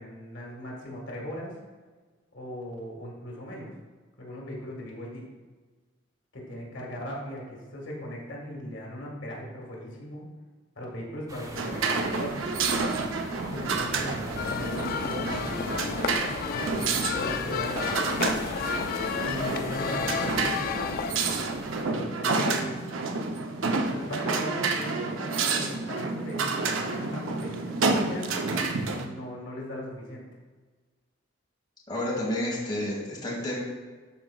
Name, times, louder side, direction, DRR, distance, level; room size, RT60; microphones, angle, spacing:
voice 1, 0.0-1.5 2.3-3.7 4.2-5.3 6.3-10.3 10.8-12.5 13.4-15.9 16.5-17.9 19.2-20.8 21.7-22.8 23.9-28.4 29.0-30.3, left 1 dB, 65° left, -2 dB, 1.7 m, -38 dB
sound 1, 11.3-21.8, right 1 dB, 15° right, 0.7 m, -41 dB
sound 2, 11.6-29.1, right 4 dB, 80° right, 0.6 m, -29 dB
sound 3, 14.3-21.1, left 6 dB, 45° left, 0.3 m, -32 dB
voice 2, 31.9-33.6, left 1 dB, 20° left, -4 dB, 1.5 m, -30 dB
12.0 x 4.5 x 2.3 m, 1.4 s
head